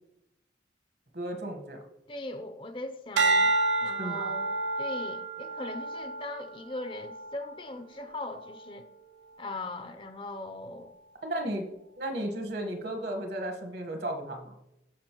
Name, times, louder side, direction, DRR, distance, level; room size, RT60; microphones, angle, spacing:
voice 1, 1.1-1.8 4.0-4.3 11.2-11.7 12.0-14.5, right 1 dB, 60° right, 1.3 m, -34 dB
voice 2, 2.1-3.5 3.8-8.9 9.4-10.9, left 2 dB, 25° left, 0.5 m, -40 dB
sound 1, 3.2-7.6 8.2-8.6, right 3 dB, 80° right, 0.7 m, -29 dB
14.5 x 5.2 x 3.0 m
head